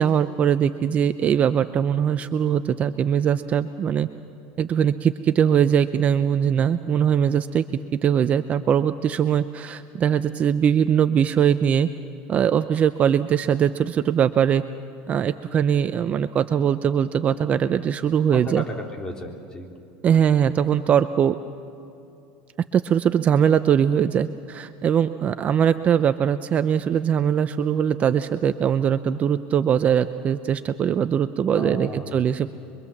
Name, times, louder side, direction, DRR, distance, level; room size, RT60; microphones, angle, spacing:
voice 1, 0.0-4.1 4.6-7.6 8.0-11.9 12.3-14.6 15.1-18.6 20.0-21.4 22.7-32.6, right 8 dB, 30° right, 11 dB, 0.6 m, -21 dB
voice 2, 18.3-19.7 31.5-32.2, equal, 15° left, 1 dB, 3.4 m, -34 dB
25.5 x 23.5 x 7.2 m, 2.7 s
supercardioid pair, 130°, 4 cm